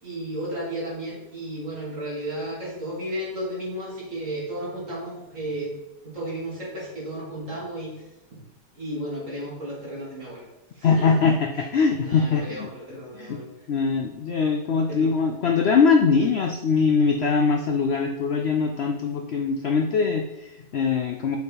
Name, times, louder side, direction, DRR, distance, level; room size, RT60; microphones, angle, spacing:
voice 1, 0.0-5.8 6.0-8.0 8.3-8.4 8.7-10.5 10.8-11.3 11.5-11.6 12.0-13.5 14.9-15.1, right 1 dB, 50° right, -6 dB, 3.0 m, -33 dB
voice 2, 10.8-12.7 13.1-13.4 13.7-21.4, left 5 dB, 80° left, 4 dB, 0.5 m, -22 dB
6.7 x 5.4 x 4.0 m, 0.96 s
omnidirectional pair, 1.8 m